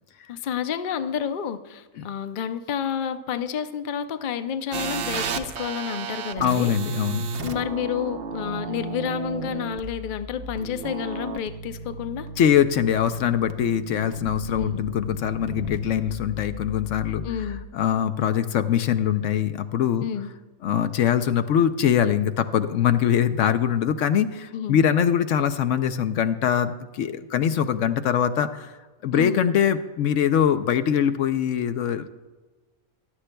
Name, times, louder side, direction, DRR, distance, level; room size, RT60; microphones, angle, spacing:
voice 1, 0.3-6.7 7.4-12.3 14.6-14.9 17.2-17.6 20.0-20.3 24.5-24.8 29.1-29.4, left 8 dB, 55° left, 10 dB, 0.6 m, -30 dB
sound 1, 4.7-17.6, right 4 dB, 55° right, 0.7 m, -34 dB
voice 2, 6.4-7.3 12.4-17.2 17.7-20.0 20.6-28.7 29.0-32.1, left 9 dB, 75° left, 10 dB, 0.9 m, -23 dB
16.0 x 11.5 x 2.2 m, 1.2 s
omnidirectional pair, 1.4 m